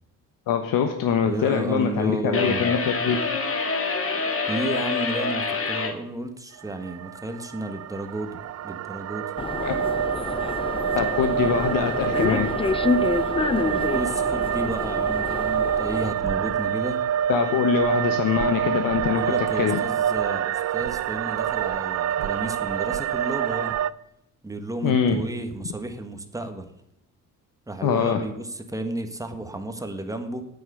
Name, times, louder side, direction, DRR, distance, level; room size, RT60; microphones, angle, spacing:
voice 1, 0.5-3.2 9.6-9.7 10.9-12.5 17.3-19.8 24.8-25.2 27.8-28.2, left 7 dB, 75° left, 6 dB, 1.3 m, -23 dB
voice 2, 1.2-2.7 4.5-9.3 13.6-17.0 19.0-23.8 24.4-26.7 27.7-30.4, right 2 dB, 10° right, 6 dB, 1.5 m, -32 dB
sound 1, 2.3-6.0, left 4 dB, 40° left, 1.9 m, -26 dB
sound 2, 6.5-23.9, right 9 dB, 50° right, 0.5 m, -27 dB
sound 3, 9.4-16.1, left 4 dB, 15° left, 0.5 m, -28 dB
9.5 x 9.3 x 8.0 m, 0.80 s
cardioid pair, 120°, 34 cm